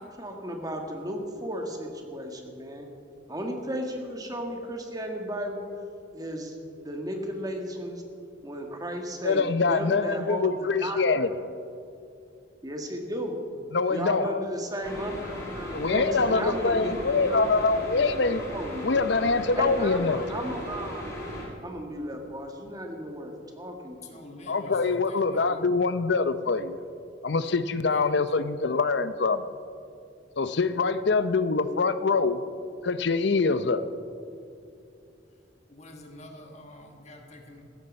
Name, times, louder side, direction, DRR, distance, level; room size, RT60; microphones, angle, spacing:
voice 1, 0.1-2.9 3.3-5.7 6.1-6.6 6.8-8.0 8.4-11.3 12.6-13.4 13.9-17.9 18.5-19.0 19.5-21.0 21.6-24.2, equal, 20° right, 2 dB, 1.6 m, -34 dB
voice 2, 9.2-11.3 13.7-14.4 15.7-18.4 18.8-20.3 24.5-26.8 27.2-29.4 30.4-32.4 32.8-33.8, left 4 dB, 60° left, 13 dB, 0.6 m, -24 dB
sound 1, 14.8-21.4, equal, 15° left, 3.3 m, -37 dB
voice 3, 24.0-25.9 27.8-28.1 35.7-37.6, left 1 dB, 35° left, 3 dB, 1.5 m, -47 dB
15.5 x 13.5 x 5.3 m, 2.6 s
head